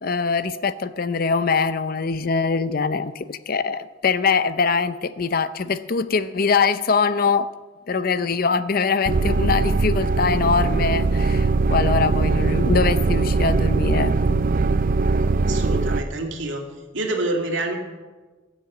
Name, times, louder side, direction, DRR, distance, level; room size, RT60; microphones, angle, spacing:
voice 1, 0.0-7.5 7.9-14.4, left 5 dB, 50° left, 0.6 m, -23 dB
sound 1, 9.0-16.0, right 3 dB, 45° right, 0.4 m, -20 dB
voice 2, 15.4-16.7 16.9-17.8, right 2 dB, 75° right, 2.3 m, -27 dB
16.0 x 7.3 x 8.1 m
head